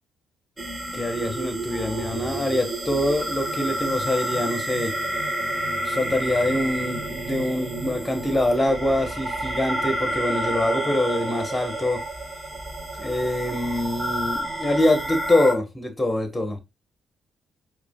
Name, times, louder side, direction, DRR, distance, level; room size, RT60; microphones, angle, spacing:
sound 1, 0.6-15.5, right 1 dB, 20° right, 1.4 m, -29 dB
voice 1, 0.9-4.9 5.8-12.0 13.0-16.6, left 1 dB, 15° left, 1.0 m, -24 dB
4.8 x 2.5 x 2.2 m
cardioid pair, 90°, 0 cm